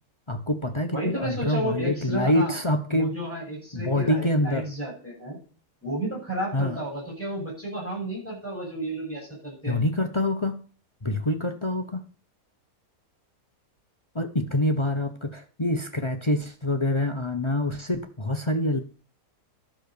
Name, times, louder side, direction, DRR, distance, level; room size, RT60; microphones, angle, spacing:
voice 1, 0.3-3.1 3.7-4.7 6.5-6.8 9.7-10.6 11.0-12.0 14.1-18.8, left 1 dB, 25° left, 6 dB, 0.8 m, -26 dB
voice 2, 0.9-2.5 2.9-5.4 5.8-9.8, right 1 dB, 10° left, -3 dB, 7.5 m, -32 dB
12.0 x 6.5 x 6.8 m, 0.41 s
omnidirectional pair, 1.6 m